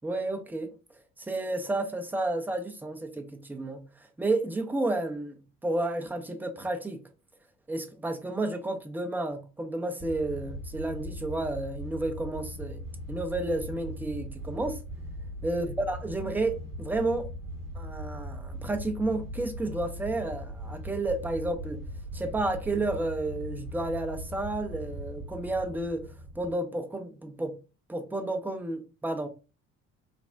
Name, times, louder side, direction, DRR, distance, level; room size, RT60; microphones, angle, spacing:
voice 1, 0.0-0.7 1.2-7.0 7.7-12.8 13.1-14.8 15.4-17.3 17.7-21.9 22.1-27.6 27.9-29.3, right 2 dB, 5° right, 0.5 m, -31 dB
sound 1, 10.0-26.6, equal, 40° right, 1.1 m, -39 dB
3.3 x 2.1 x 2.5 m
figure-of-eight pair, 55°, 40 cm